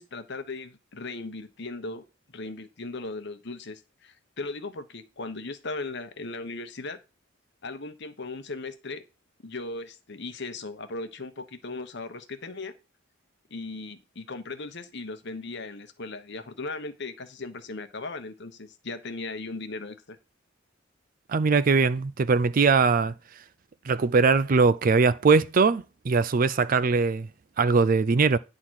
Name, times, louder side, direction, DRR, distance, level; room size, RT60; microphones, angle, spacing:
voice 1, 0.0-2.0 2.3-7.0 7.6-9.0 9.4-12.7 13.5-20.2, left 3 dB, 60° left, 1.1 m, -37 dB
voice 2, 21.3-23.1 23.9-27.3 27.6-28.4, right 4 dB, 45° right, 0.4 m, -21 dB
10.5 x 3.8 x 6.3 m
head